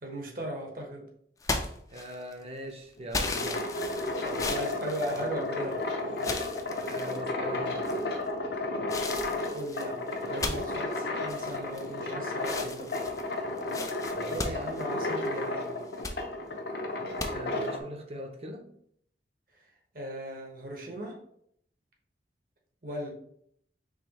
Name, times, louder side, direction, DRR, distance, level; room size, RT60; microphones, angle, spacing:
voice 1, 0.0-1.1 4.2-5.8 9.5-12.9 14.3-15.7 19.9-21.2 22.8-23.1, right 1 dB, 50° right, 1 dB, 1.0 m, -37 dB
sound 1, 1.4-2.4 3.1-5.7 6.2-7.2 7.8-8.3 8.9-12.1 12.4-15.4 15.8-16.2 17.2-17.3, left 3 dB, 20° left, 0.4 m, -36 dB
voice 2, 1.9-3.7 6.9-7.9 14.1-14.4 17.3-18.6, equal, 35° right, 3 dB, 0.6 m, -41 dB
crank - conveyor belt - cider press, 3.0-17.8, left 2 dB, 70° left, 0.7 m, -33 dB
4.9 x 3.2 x 2.9 m, 0.69 s
head